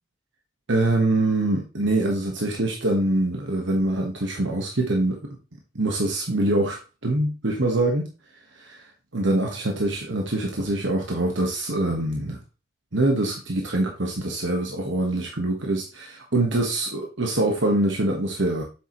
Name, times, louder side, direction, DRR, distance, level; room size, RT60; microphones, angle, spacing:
voice 1, 0.7-5.2 5.7-8.1 8.5-8.8 9.1-12.4 12.9-18.6, right 2 dB, 70° right, 1 dB, 1.4 m, -24 dB
7.8 x 6.7 x 3.1 m, 0.32 s
head